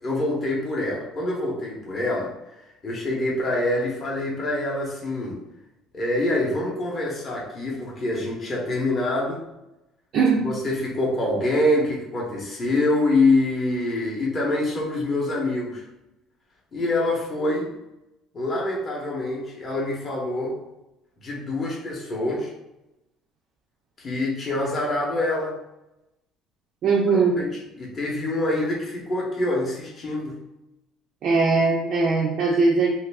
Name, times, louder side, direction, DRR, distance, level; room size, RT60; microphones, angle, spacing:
voice 1, 0.0-2.3 2.6-5.4 5.9-9.4 10.4-15.8 16.7-17.7 18.3-20.6 21.2-22.5 24.0-25.5 27.1-27.5 27.8-30.4, left 2 dB, 25° left, -3 dB, 0.6 m, -25 dB
voice 2, 10.1-10.5 26.8-27.4 31.2-32.9, right 4 dB, 45° right, -1 dB, 0.3 m, -20 dB
2.9 x 2.4 x 3.2 m, 0.92 s
cardioid pair, 175°, 0 cm